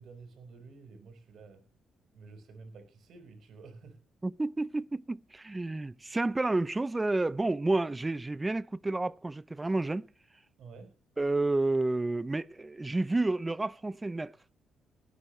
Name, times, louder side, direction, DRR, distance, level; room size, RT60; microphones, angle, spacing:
voice 1, 0.0-1.6 2.1-4.0 10.6-10.9, right 4 dB, 65° right, 4.7 m, -50 dB
voice 2, 4.2-10.1 11.2-14.3, right 2 dB, 15° right, 0.6 m, -30 dB
18.5 x 9.3 x 3.2 m
cardioid pair, 90°, 0 cm